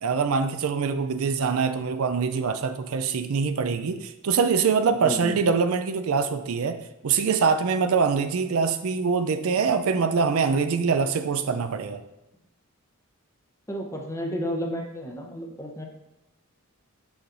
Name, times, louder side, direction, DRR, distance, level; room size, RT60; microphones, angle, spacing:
voice 1, 0.0-12.0, right 5 dB, 70° right, 9 dB, 0.4 m, -24 dB
voice 2, 5.0-5.4 13.7-15.9, equal, 15° left, 1 dB, 0.8 m, -32 dB
6.9 x 6.2 x 2.6 m, 0.95 s
head